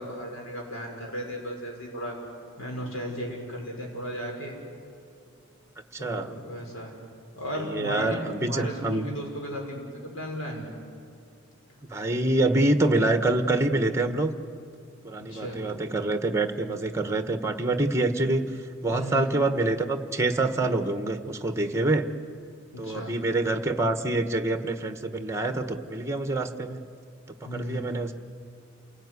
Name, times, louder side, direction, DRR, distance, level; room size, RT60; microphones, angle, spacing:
voice 1, 0.0-2.2 2.6-4.6 6.0-6.9 7.3-10.6 15.2-15.6 18.9-19.4 22.7-23.1 27.4-27.9, equal, 75° left, 0 dB, 6.5 m, -35 dB
voice 2, 5.9-6.3 7.7-9.1 11.9-14.4 15.0-18.5 18.8-22.1 22.8-26.8 27.5-28.1, right 2 dB, 15° right, 8 dB, 1.3 m, -26 dB
28.5 x 17.5 x 9.7 m, 2.5 s
head